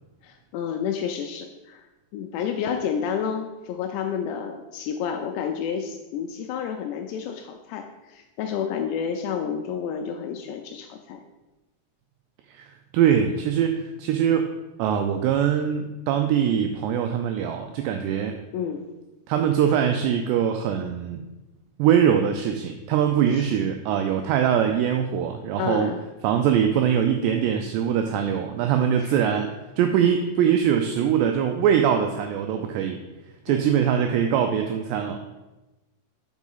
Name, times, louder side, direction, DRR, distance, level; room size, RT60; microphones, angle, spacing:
voice 1, 0.2-1.9 2.1-11.2 18.5-18.8 23.3-23.5 25.6-26.0 29.0-29.2 33.5-33.7, left 7 dB, 85° left, 4 dB, 2.5 m, -30 dB
voice 2, 12.5-14.5 14.8-18.4 19.3-21.2 21.8-25.9 26.2-29.5 29.8-33.0 33.5-35.2, right 8 dB, 85° right, 5 dB, 2.4 m, -22 dB
6.1 x 4.8 x 5.5 m, 1.1 s
omnidirectional pair, 5.4 m